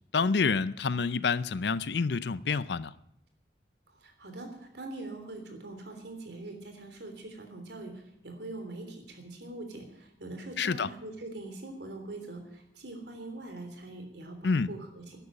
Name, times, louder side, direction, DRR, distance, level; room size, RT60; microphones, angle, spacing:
voice 1, 0.1-2.9 10.6-10.9 14.4-14.7, left 4 dB, 70° left, 0.5 m, -28 dB
voice 2, 3.9-15.2, right 2 dB, 70° right, 3.4 m, -43 dB
12.0 x 10.5 x 8.7 m
head